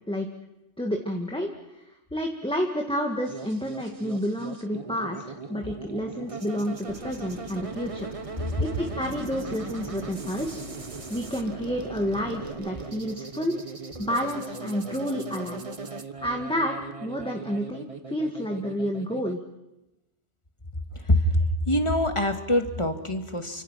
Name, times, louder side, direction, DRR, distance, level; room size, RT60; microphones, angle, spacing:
voice 1, 0.8-8.1 8.6-10.6 11.1-13.6 14.0-15.6 16.2-19.4, equal, 5° left, 2 dB, 1.8 m, -30 dB
sound 1, 3.3-19.3, right 4 dB, 30° right, 1.3 m, -39 dB
Boat Water vehicle / Engine, 6.9-12.5, left 1 dB, 60° left, 6.1 m, -45 dB
voice 2, 21.1-23.6, left 1 dB, 25° left, 6 dB, 2.1 m, -24 dB
29.5 x 25.5 x 5.9 m, 0.94 s
omnidirectional pair, 1.3 m